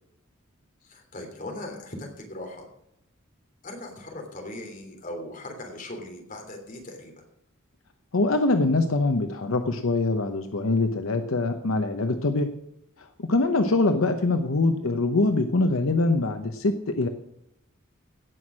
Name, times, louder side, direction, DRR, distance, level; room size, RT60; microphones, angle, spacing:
voice 1, 0.8-2.7 3.6-7.1, left 1 dB, 40° left, 2 dB, 3.3 m, -39 dB
voice 2, 8.1-12.5 13.0-17.1, left 2 dB, 80° left, 7 dB, 0.8 m, -24 dB
17.0 x 6.2 x 6.4 m, 0.78 s
head